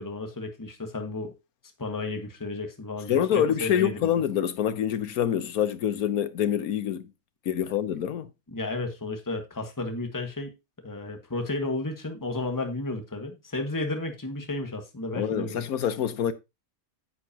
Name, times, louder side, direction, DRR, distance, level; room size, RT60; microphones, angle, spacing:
voice 1, 0.0-1.4 1.8-4.1 8.5-10.5 10.8-15.6, left 2 dB, 15° left, 1.4 m, -33 dB
voice 2, 3.1-7.1 7.5-8.3 15.2-16.3, left 9 dB, 85° left, 1.4 m, -26 dB
9.7 x 8.1 x 2.8 m
omnidirectional pair, 1.5 m